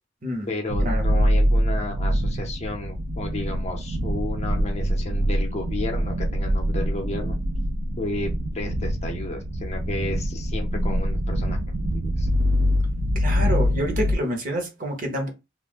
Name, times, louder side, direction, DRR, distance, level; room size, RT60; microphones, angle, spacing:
voice 1, 0.5-7.4 8.0-11.6 11.9-12.3, left 2 dB, 35° left, 0.6 m, -32 dB
sound 1, 0.7-14.2, equal, 65° right, 0.5 m, -24 dB
voice 2, 13.1-15.3, right 1 dB, 45° right, 0.9 m, -28 dB
2.4 x 2.1 x 3.5 m
head